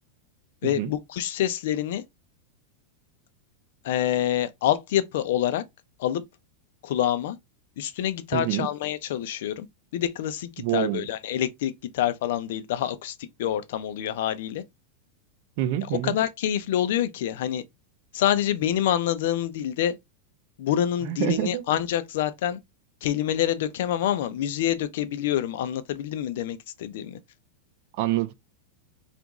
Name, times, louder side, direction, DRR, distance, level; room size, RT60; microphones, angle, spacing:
voice 1, 0.6-2.0 3.8-5.6 6.0-6.2 6.8-7.4 7.8-9.7 9.9-14.6 16.0-17.6 18.1-20.0 20.6-22.6 23.0-27.2, left 11 dB, 60° left, 0.5 m, -26 dB
voice 2, 8.3-8.7 10.6-11.1 15.6-16.2 21.0-21.6 27.9-28.3, right 14 dB, 45° right, 0.4 m, -27 dB
2.9 x 2.5 x 3.6 m
supercardioid pair, 165°, 0 cm